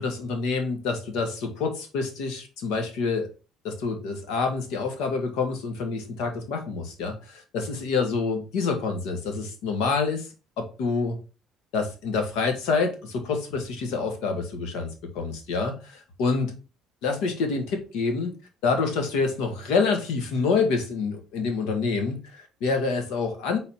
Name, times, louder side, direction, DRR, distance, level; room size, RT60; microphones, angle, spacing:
voice 1, 0.0-3.3 3.6-10.3 10.6-11.2 11.7-16.5 17.0-18.3 18.6-23.6, left 4 dB, 85° left, 5 dB, 1.6 m, -27 dB
4.4 x 4.0 x 5.3 m, 0.33 s
cardioid pair, 95°, 0 cm